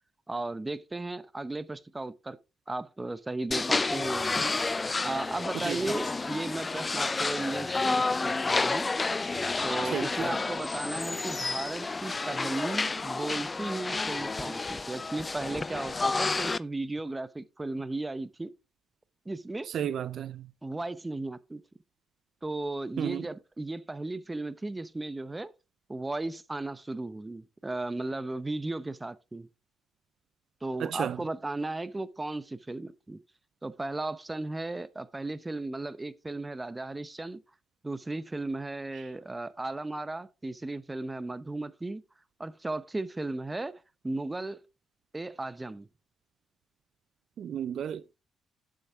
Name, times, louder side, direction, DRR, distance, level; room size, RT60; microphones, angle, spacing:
voice 1, 0.3-2.4 2.7-4.6 5.0-8.9 9.6-18.5 19.3-19.7 20.6-21.6 22.4-25.5 25.9-29.5 30.6-33.2 33.6-37.4 37.8-42.0 42.4-44.6 45.1-45.9, right 2 dB, 15° right, 0.8 m, -35 dB
sound 1, 3.5-16.6, left 3 dB, 25° left, 0.4 m, -30 dB
voice 2, 9.8-10.3 19.7-20.5 23.0-23.2 30.8-31.2 47.4-48.1, right 9 dB, 65° right, 0.4 m, -33 dB
10.5 x 7.1 x 3.5 m
cardioid pair, 90°, 0 cm